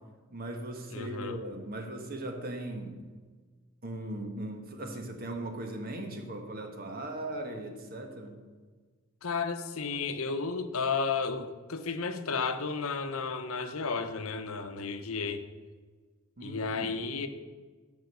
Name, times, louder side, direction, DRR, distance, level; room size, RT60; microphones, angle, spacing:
voice 1, 0.3-3.0 3.8-8.3 16.4-16.9, right 1 dB, 45° right, 4 dB, 1.4 m, -38 dB
voice 2, 0.9-1.4 9.2-15.4 16.4-17.3, left 4 dB, 80° left, 9 dB, 0.8 m, -33 dB
11.5 x 5.2 x 6.7 m, 1.5 s
head